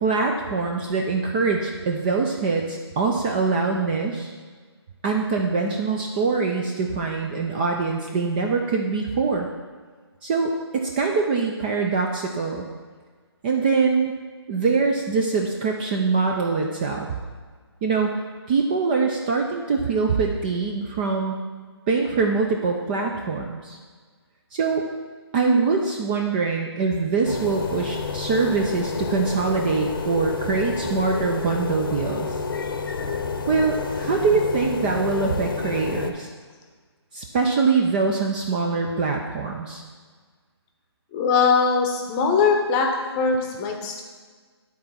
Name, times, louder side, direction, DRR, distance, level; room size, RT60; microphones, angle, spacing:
voice 1, 0.0-4.3 5.0-9.5 10.2-12.6 13.4-14.1 14.5-17.1 17.8-18.2 18.5-21.4 21.9-23.8 24.5-24.8 25.3-32.4 33.5-36.3 37.1-39.8, right 4 dB, 20° right, 1 dB, 0.5 m, -23 dB
sound 1, 27.2-36.1, left 5 dB, 50° left, 0.8 m, -29 dB
voice 2, 41.1-42.9 43.2-44.0, left 5 dB, 20° left, 3 dB, 0.9 m, -21 dB
10.5 x 4.3 x 5.6 m, 1.5 s
figure-of-eight pair, 150°, 14 cm